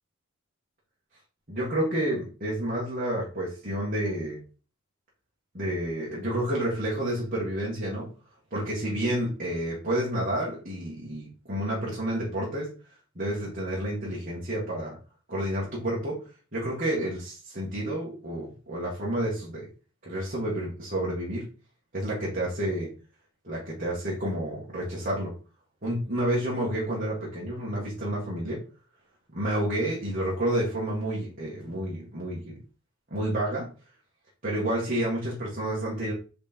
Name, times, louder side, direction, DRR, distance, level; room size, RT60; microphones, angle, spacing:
voice 1, 1.5-4.4 5.5-8.1 8.5-12.7 13.2-15.0 15.3-16.2 16.5-19.7 20.1-21.5 21.9-22.9 23.4-25.3 25.8-28.6 29.3-32.6 33.1-33.7 34.4-36.1, right 1 dB, 40° right, -6 dB, 2.2 m, -30 dB
5.0 x 4.8 x 4.6 m, 0.36 s
head